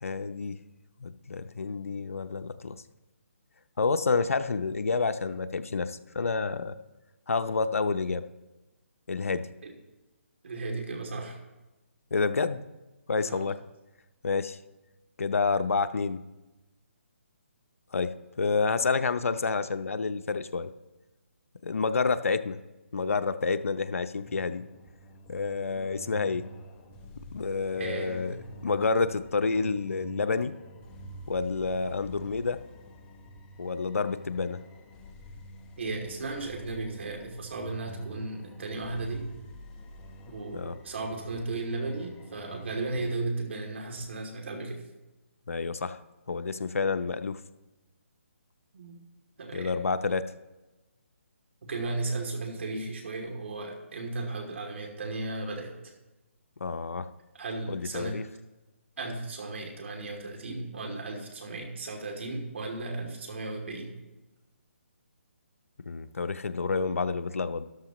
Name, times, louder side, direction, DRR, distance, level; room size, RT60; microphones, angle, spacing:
voice 1, 0.0-0.6 1.0-2.8 3.8-6.8 7.3-8.2 9.1-9.5 12.1-12.6 13.1-13.6 14.2-14.6 15.2-16.2 17.9-18.1 18.4-20.7 21.6-22.6 22.9-24.6 25.3-26.4 27.3-28.4 28.6-30.5 31.3-32.6 33.6-34.6 40.5-40.8 45.5-46.0 46.3-47.4 49.5-50.2 56.6-57.1 57.7-58.2 65.9-67.6, left 4 dB, 85° left, 10 dB, 0.6 m, -29 dB
voice 2, 10.4-11.4 13.2-13.5 27.8-28.5 35.8-39.3 40.3-44.8 48.7-49.0 49.4-49.7 51.6-55.7 57.3-58.2 59.0-63.9, right 2 dB, 60° right, 2 dB, 2.7 m, -35 dB
sound 1, 24.2-43.1, equal, 15° left, 0.9 m, -48 dB
13.0 x 11.5 x 3.0 m, 1.1 s
hypercardioid pair, 160°, 7 cm